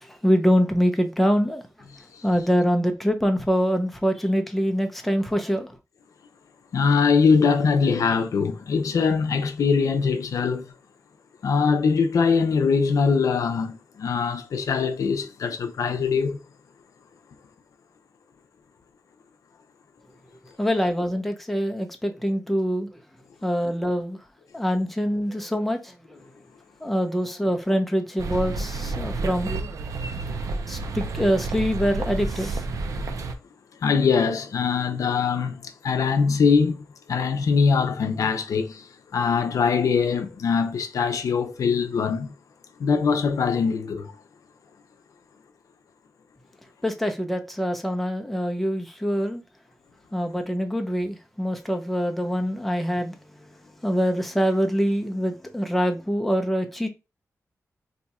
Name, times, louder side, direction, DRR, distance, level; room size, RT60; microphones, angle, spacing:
voice 1, 0.1-1.6 2.2-5.8 20.6-22.9 23.4-24.2 24.5-26.2 26.8-29.7 30.5-32.6 46.8-49.4 50.1-53.2 53.8-56.9, equal, 5° left, 0.5 m, -24 dB
voice 2, 6.7-10.7 11.4-16.4 33.8-38.8 39.1-42.3 42.8-44.1, left 5 dB, 80° left, 0.5 m, -22 dB
sound 1, 28.2-33.3, right 3 dB, 85° right, 0.5 m, -30 dB
2.7 x 2.3 x 4.1 m
wide cardioid pair, 115°, 6 cm